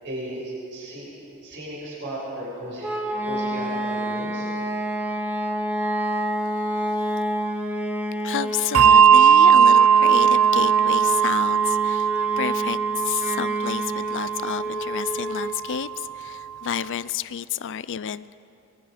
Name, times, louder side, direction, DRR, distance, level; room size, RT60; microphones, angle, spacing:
voice 1, 0.0-1.1 1.4-4.5, right 1 dB, 55° right, -6 dB, 6.8 m, -35 dB
sound 1, 2.8-15.6, right 1 dB, 10° right, 1.6 m, -29 dB
voice 2, 8.2-18.4, left 8 dB, 60° left, 17 dB, 0.5 m, -30 dB
Bell, 8.7-15.6, right 7 dB, 75° right, 0.5 m, -18 dB
24.5 x 21.5 x 5.1 m, 2.6 s
head